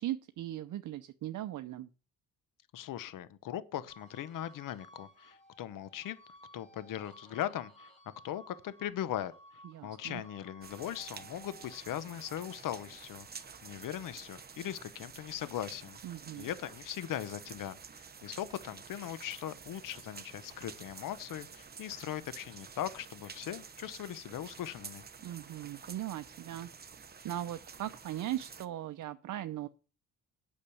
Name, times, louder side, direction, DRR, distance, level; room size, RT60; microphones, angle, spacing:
voice 1, 0.0-1.9 9.6-10.2 16.0-16.5 25.2-26.7 27.2-29.7, right 13 dB, 60° right, 0.7 m, -39 dB
voice 2, 2.7-6.2 6.5-7.9 8.2-9.3 9.8-16.0 16.4-25.0, left 11 dB, 65° left, 0.9 m, -39 dB
sound 1, 3.9-16.5 16.9-18.6, right 1 dB, 20° left, 2.9 m, -59 dB
sound 2, 10.6-28.7, right 6 dB, 25° right, 0.9 m, -50 dB
Gunshot gunfire, 16.5-17.1 18.5-19.0 20.5-21.1, right 2 dB, 10° right, 2.9 m, -62 dB
8.6 x 6.4 x 7.0 m
cardioid pair, 115°, 35 cm